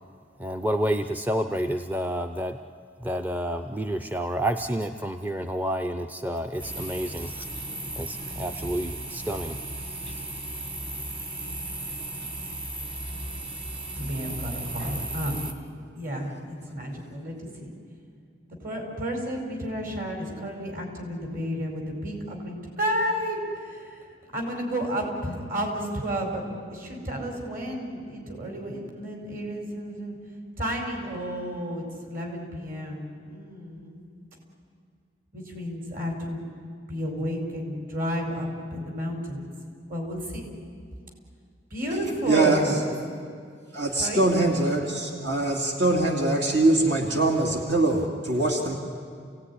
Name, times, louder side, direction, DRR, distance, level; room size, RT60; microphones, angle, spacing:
voice 1, 0.4-2.6 3.0-7.7 8.0-9.6 10.1-10.2, right 1 dB, 10° right, 7 dB, 0.6 m, -29 dB
sound 1, 6.6-15.5, right 2 dB, 30° right, 1.9 m, -35 dB
voice 2, 14.0-15.4 16.0-17.7 18.6-23.4 23.6-24.0 24.3-30.2 30.6-34.0 35.3-36.4 36.9-39.5 39.9-40.5 41.7-42.8 44.0-44.2, equal, 50° right, 2 dB, 5.3 m, -31 dB
voice 3, 42.3-42.7 43.7-48.8, right 2 dB, 70° right, 1 dB, 2.4 m, -23 dB
29.0 x 17.5 x 10.0 m, 2.2 s
head